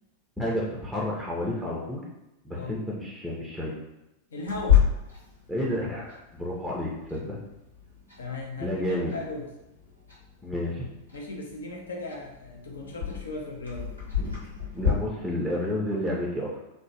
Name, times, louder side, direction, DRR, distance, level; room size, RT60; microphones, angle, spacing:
voice 1, 0.4-2.0 2.4-3.7 5.5-7.4 8.6-9.1 10.4-10.9 14.7-16.5, left 1 dB, ahead, -4 dB, 0.5 m, -30 dB
voice 2, 4.3-4.9 7.2-7.4 8.2-9.5 11.1-13.9, left 2 dB, 65° left, 0 dB, 0.5 m, -37 dB
Clock, 4.5-14.9, left 9 dB, 85° left, 1.1 m, -31 dB
3.0 x 2.1 x 2.7 m, 0.94 s
figure-of-eight pair, 90°, 0 cm